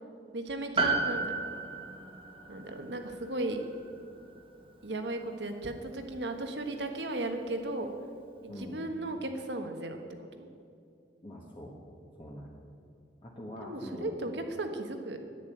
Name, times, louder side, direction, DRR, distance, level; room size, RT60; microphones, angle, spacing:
voice 1, 0.3-1.4 2.5-3.6 4.8-7.9 8.4-10.0 10.3-10.5 13.6-15.2, right 2 dB, 75° right, 5 dB, 1.4 m, -36 dB
Piano, 0.8-5.4 5.6-5.7, right 3 dB, 30° right, 1.4 m, -34 dB
voice 2, 8.5-8.8 11.2-11.8 12.2-12.5 13.2-14.1, equal, 30° left, -3 dB, 1.3 m, -44 dB
10.5 x 9.6 x 8.6 m, 2.5 s
head